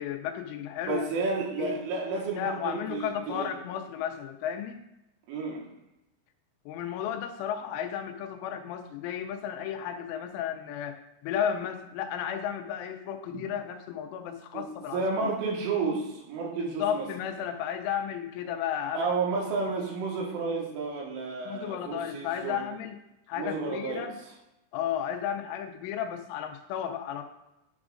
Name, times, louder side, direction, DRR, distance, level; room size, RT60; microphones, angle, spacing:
voice 1, 0.0-1.0 1.6-1.8 2.3-4.8 6.7-15.3 16.8-19.1 19.6-19.7 21.5-23.0 23.3-24.2 24.7-27.2, left 9 dB, 90° left, 5 dB, 3.1 m, -33 dB
voice 2, 0.8-3.5 5.3-5.6 13.3-13.4 14.5-17.1 18.9-22.6 23.4-24.1, right 4 dB, 85° right, -2 dB, 3.9 m, -31 dB
11.5 x 6.0 x 2.5 m, 0.93 s
omnidirectional pair, 5.4 m